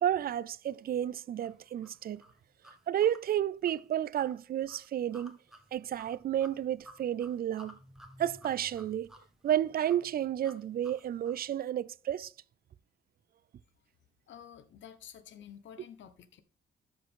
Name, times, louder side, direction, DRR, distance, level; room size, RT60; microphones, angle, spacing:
voice 1, 0.0-2.2 2.9-5.4 5.7-7.8 8.2-9.1 9.4-12.3, right 11 dB, 50° right, 0.4 m, -31 dB
sound 1, 1.4-11.5, equal, ahead, 1.6 m, -56 dB
voice 2, 14.3-16.4, left 9 dB, 70° left, 1.1 m, -50 dB
13.0 x 5.0 x 3.6 m
cardioid pair, 90°, 20 cm